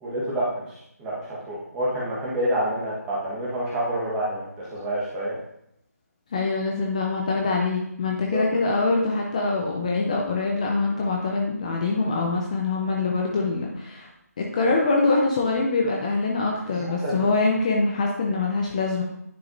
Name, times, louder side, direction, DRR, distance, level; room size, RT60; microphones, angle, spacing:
voice 1, 0.0-5.4 8.3-8.4 16.8-17.1, right 1 dB, 10° right, -6 dB, 1.2 m, -28 dB
voice 2, 6.3-14.1 14.4-19.0, left 3 dB, 25° left, -1 dB, 0.6 m, -24 dB
10.0 x 4.9 x 2.6 m, 0.76 s
figure-of-eight pair, 160°, 9 cm